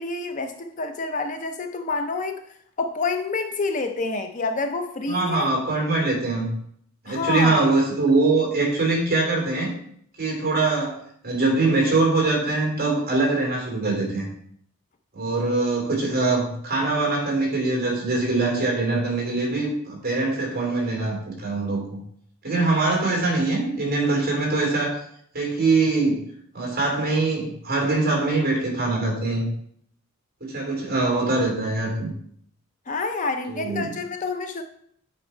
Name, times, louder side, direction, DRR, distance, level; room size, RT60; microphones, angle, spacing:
voice 1, 0.0-5.5 7.1-7.7 32.9-34.6, left 3 dB, 35° left, 6 dB, 0.4 m, -28 dB
voice 2, 5.1-6.5 7.0-9.7 10.2-14.3 15.1-22.0 22.4-25.0 25.3-26.2 26.5-29.5 30.4-32.1 33.5-33.9, right 3 dB, 40° right, -1 dB, 2.8 m, -23 dB
8.7 x 4.2 x 4.3 m, 0.66 s
head